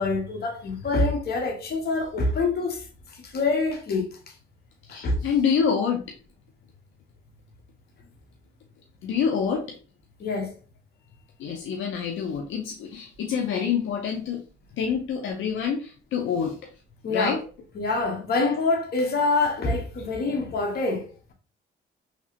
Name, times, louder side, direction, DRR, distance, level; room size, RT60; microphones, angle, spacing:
voice 1, 0.0-4.2 4.9-5.2 10.2-10.5 17.0-17.4 17.7-21.1, left 3 dB, 55° left, 1.1 m, -26 dB
voice 2, 4.8-6.2 9.0-9.8 11.4-14.4 14.7-16.6 17.1-17.4, left 7 dB, 80° left, 0.6 m, -27 dB
3.1 x 2.9 x 2.9 m
cardioid pair, 90°, 20 cm